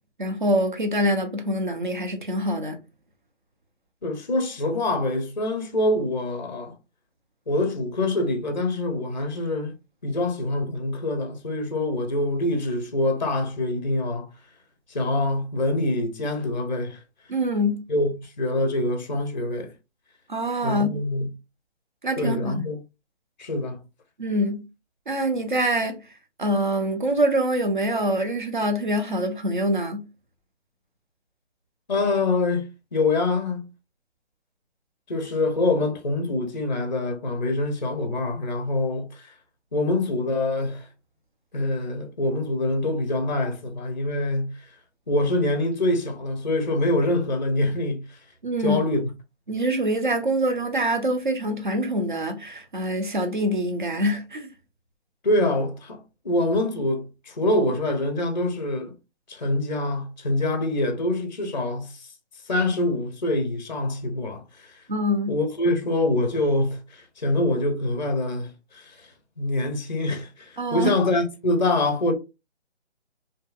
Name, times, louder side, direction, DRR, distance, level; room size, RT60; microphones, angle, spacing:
voice 1, 0.2-2.8 17.3-17.8 20.3-20.9 22.0-22.6 24.2-24.6 25.1-26.0 26.4-30.0 48.4-48.8 49.5-54.5 64.9-65.4 70.6-70.9, equal, 45° right, 0.4 m, -25 dB
voice 2, 4.0-6.7 7.5-9.7 10.0-14.3 14.9-17.0 17.9-19.7 20.6-21.3 22.2-22.8 23.4-23.8 31.9-33.7 35.1-39.3 39.7-40.9 41.5-44.6 45.1-48.2 48.6-49.1 55.2-56.0 56.2-58.9 59.3-62.1 62.5-64.8 65.3-69.1 69.4-72.1, left 2 dB, 40° left, 0.5 m, -25 dB
2.6 x 2.3 x 2.2 m
hypercardioid pair, 170°, 36 cm